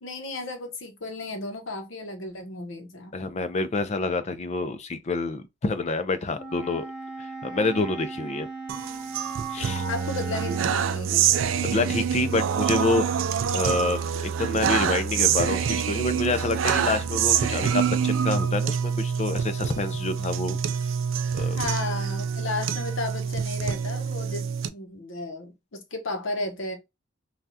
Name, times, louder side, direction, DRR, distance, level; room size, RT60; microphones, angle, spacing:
voice 1, 0.0-3.2 9.9-11.2 21.6-26.8, left 2 dB, 80° left, 0.9 m, -34 dB
voice 2, 3.1-6.8 7.2-8.5 9.5-9.9 11.6-13.1 13.5-20.6 21.3-21.6, left 3 dB, 35° left, 0.4 m, -27 dB
Wind instrument woodwind instrument, 6.3-10.8, right 3 dB, 5° right, 0.6 m, -37 dB
sound 1, 8.7-24.7, right 7 dB, 75° right, 0.4 m, -26 dB
3.3 x 2.3 x 2.6 m
head